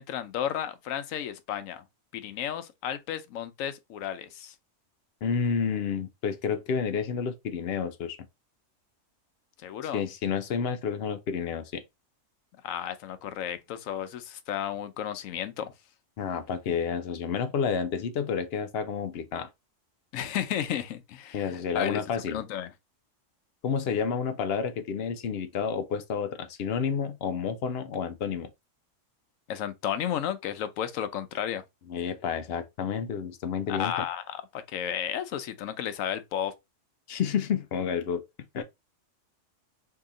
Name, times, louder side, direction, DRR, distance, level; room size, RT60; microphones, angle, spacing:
voice 1, 0.0-1.8 2.1-4.5 9.6-10.0 12.6-15.7 20.1-22.0 22.3-22.7 29.5-31.6 33.7-36.5, left 10 dB, 85° left, 1.0 m, -33 dB
voice 2, 5.2-8.2 9.9-11.8 16.2-19.5 21.3-22.4 23.6-28.5 31.9-34.1 37.1-38.2 38.5-38.6, left 6 dB, 65° left, 0.7 m, -30 dB
2.8 x 2.7 x 3.7 m
omnidirectional pair, 1.3 m